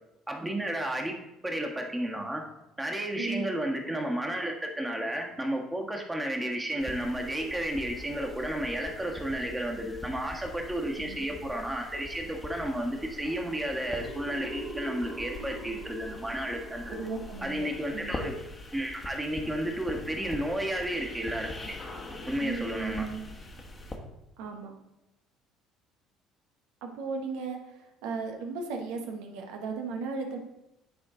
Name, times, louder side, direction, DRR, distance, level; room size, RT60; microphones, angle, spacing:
voice 1, 0.3-1.2 1.4-2.4 2.8-17.0 17.4-18.4 18.7-21.7 22.3-23.0, right 1 dB, 15° right, 1 dB, 1.5 m, -32 dB
sound 1, 6.8-24.0, left 2 dB, 30° left, 1.2 m, -43 dB
sound 2, 14.0-18.7, right 1 dB, 55° right, 2.0 m, -44 dB
voice 2, 16.9-18.3 22.4-23.2 24.4-24.7 26.8-30.4, right 4 dB, 80° right, 3 dB, 1.1 m, -36 dB
9.6 x 3.7 x 3.8 m, 0.90 s
supercardioid pair, 75°, 0 cm